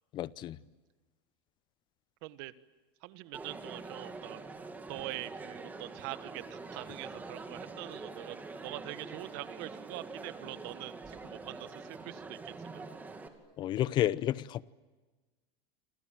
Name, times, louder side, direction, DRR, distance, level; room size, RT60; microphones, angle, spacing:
voice 1, 0.1-0.6 13.6-14.6, left 13 dB, 35° left, 0.8 m, -31 dB
voice 2, 2.2-2.5 3.0-4.4 4.9-8.4 8.6-12.8, right 18 dB, 60° right, 1.5 m, -44 dB
Crowd, 3.3-13.3, right 3 dB, 10° right, 2.5 m, -45 dB
28.5 x 26.5 x 7.7 m
supercardioid pair, 160°, 14 cm